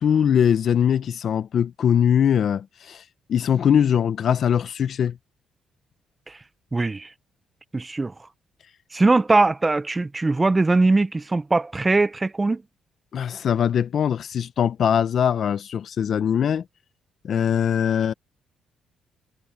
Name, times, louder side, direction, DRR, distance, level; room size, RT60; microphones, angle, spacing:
voice 1, 0.0-3.0 3.3-5.2 13.1-16.6 17.2-18.1, left 8 dB, 60° left, 0.9 m, -21 dB
voice 2, 6.7-7.1 7.7-8.1 8.9-12.6, right 3 dB, 20° right, 0.9 m, -21 dB
cardioid pair, 90°, 0 cm